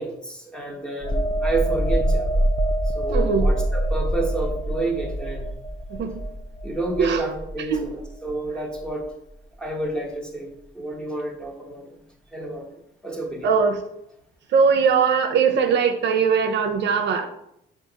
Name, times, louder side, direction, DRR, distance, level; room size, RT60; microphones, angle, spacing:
voice 1, 0.0-2.5 2.9-5.5 6.6-9.1 9.6-12.0 12.3-12.7 13.0-13.5, right 2 dB, 5° left, 0 dB, 0.8 m, -30 dB
sound 1, 1.0-8.5 8.8-9.0, right 1 dB, 20° left, 0.4 m, -25 dB
voice 2, 3.1-3.5 5.9-6.1 7.0-7.3 7.6-7.8 13.4-13.8 14.5-17.3, right 6 dB, 65° right, 5 dB, 0.5 m, -20 dB
5.6 x 2.4 x 2.7 m, 0.80 s
cardioid pair, 90°, 20 cm